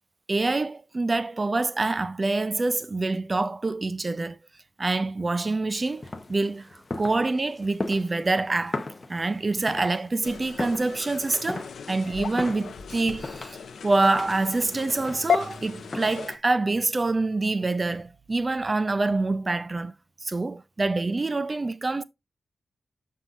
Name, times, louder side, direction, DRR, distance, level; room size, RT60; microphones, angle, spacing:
voice 1, 0.3-4.4 4.8-8.8 9.1-19.9 20.2-22.0, right 3 dB, 25° right, 0.4 m, -26 dB
sound 1, 5.7-16.4, left 2 dB, 30° left, 0.7 m, -38 dB
sound 2, 10.2-16.4, left 6 dB, 90° left, 0.6 m, -34 dB
7.3 x 5.4 x 2.4 m
wide cardioid pair, 145°, 0 cm